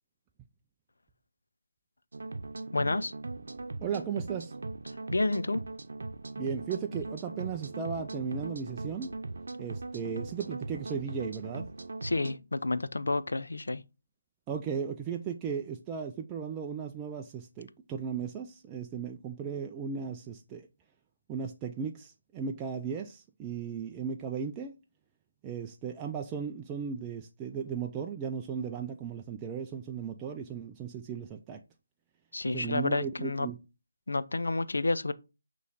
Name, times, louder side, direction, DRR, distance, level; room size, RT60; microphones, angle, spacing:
sound 1, 2.1-12.4, right 3 dB, 70° right, 0.7 m, -40 dB
voice 1, 2.7-3.1 5.1-5.6 12.0-13.8 32.3-33.5 34.1-35.1, left 2 dB, 80° left, 0.6 m, -30 dB
voice 2, 3.8-4.5 6.4-9.1 9.6-11.7 14.5-20.7 21.3-24.8 25.4-31.6 32.5-33.6, right 6 dB, 15° right, 0.3 m, -36 dB
8.1 x 3.1 x 4.0 m
figure-of-eight pair, 165°, 0 cm